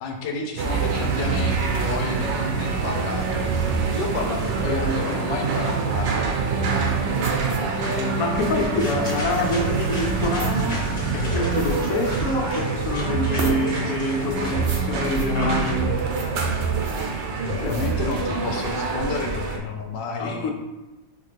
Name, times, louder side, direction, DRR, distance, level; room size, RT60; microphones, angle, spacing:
voice 1, 0.0-3.5 3.9-6.4 17.0-17.1 17.4-20.5, left 4 dB, 80° left, 2 dB, 1.3 m, -31 dB
sound 1, 0.6-19.6, right 4 dB, 85° right, 1.4 m, -25 dB
voice 2, 4.7-5.0 7.8-16.0 17.6-17.8 20.2-20.5, left 2 dB, 60° left, 1 dB, 1.0 m, -26 dB
sound 2, 7.2-18.8, right 3 dB, 60° right, 0.6 m, -39 dB
sound 3, 8.2-15.7, left 1 dB, 25° left, 1.2 m, -36 dB
4.9 x 3.4 x 3.2 m, 1.1 s
omnidirectional pair, 1.9 m